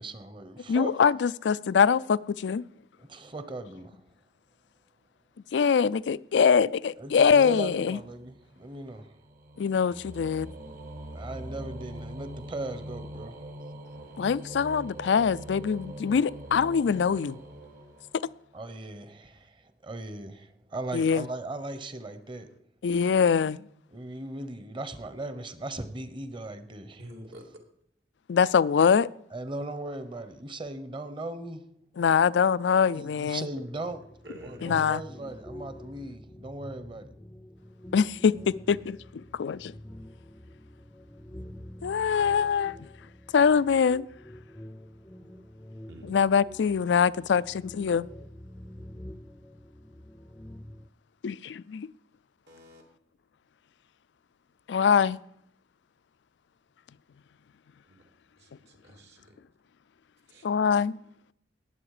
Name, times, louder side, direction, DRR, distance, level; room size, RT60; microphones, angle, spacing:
voice 1, 0.0-1.0 3.0-4.0 7.0-9.1 11.1-13.4 18.5-22.5 23.9-27.0 29.3-31.6 33.0-34.0 34.4-37.1, right 2 dB, 30° right, 1.0 m, -38 dB
voice 2, 0.7-2.6 5.5-8.0 9.6-10.5 14.2-17.4 20.9-21.3 22.8-23.7 28.3-29.1 32.0-33.5 34.6-35.0 37.9-39.8 41.8-42.9 43.3-44.1 46.1-48.1 51.2-51.9 54.7-55.2 60.4-61.0, left 6 dB, 90° left, 0.4 m, -23 dB
sound 1, 7.6-18.5, right 1 dB, 50° right, 1.6 m, -43 dB
voice 3, 27.0-27.5 33.5-33.6 34.2-34.7 45.9-46.1 52.5-52.8 57.8-58.1 58.4-59.4 60.3-60.5, equal, 75° right, 2.7 m, -48 dB
sound 2, 33.8-50.9, left 1 dB, 10° left, 0.5 m, -47 dB
19.5 x 7.9 x 4.9 m
head